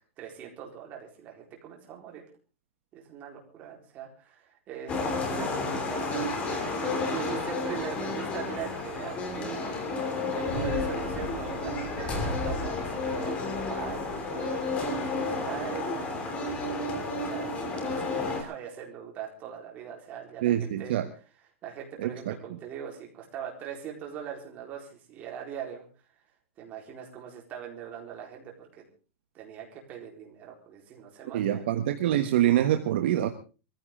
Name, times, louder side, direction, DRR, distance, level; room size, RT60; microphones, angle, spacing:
voice 1, 0.2-2.2 2.9-9.6 10.3-16.3 16.8-21.0 21.6-25.9 26.6-28.9 29.3-31.7, right 8 dB, 25° right, 0 dB, 4.3 m, -41 dB
sound 1, 4.9-18.4, left 3 dB, 15° left, 3.2 m, -31 dB
voice 2, 20.4-21.0 22.0-22.3 31.3-33.3, right 12 dB, 50° right, 7 dB, 1.4 m, -25 dB
21.5 x 15.0 x 3.8 m, 0.36 s
supercardioid pair, 170°, 7 cm